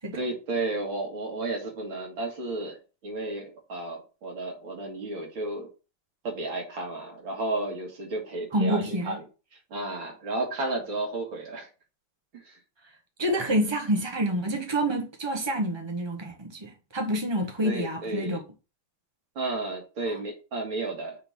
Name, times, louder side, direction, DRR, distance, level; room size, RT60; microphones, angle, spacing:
voice 1, 0.1-2.8 3.0-5.7 6.2-9.2 9.5-11.7 12.3-12.6 17.6-18.4 19.4-21.2, right 2 dB, 80° right, 2.8 m, -32 dB
voice 2, 8.5-9.2 12.8-12.9 13.2-18.4 20.0-20.2, right 1 dB, 35° right, 0.4 m, -28 dB
6.6 x 3.6 x 6.1 m
omnidirectional pair, 2.1 m